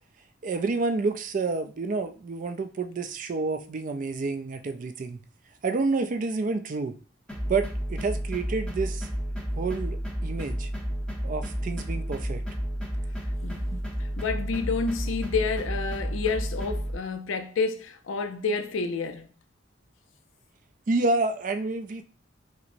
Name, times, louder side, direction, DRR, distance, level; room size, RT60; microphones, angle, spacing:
voice 1, 0.4-5.2 5.6-7.0 7.5-9.1 9.6-10.0 10.2-10.7 11.2-12.4 20.9-22.0, right 3 dB, 40° right, 0.3 m, -29 dB
sound 1, 7.3-17.0, equal, 5° left, 0.7 m, -31 dB
voice 2, 14.0-19.3, left 4 dB, 80° left, 0.4 m, -29 dB
5.7 x 2.0 x 2.6 m
head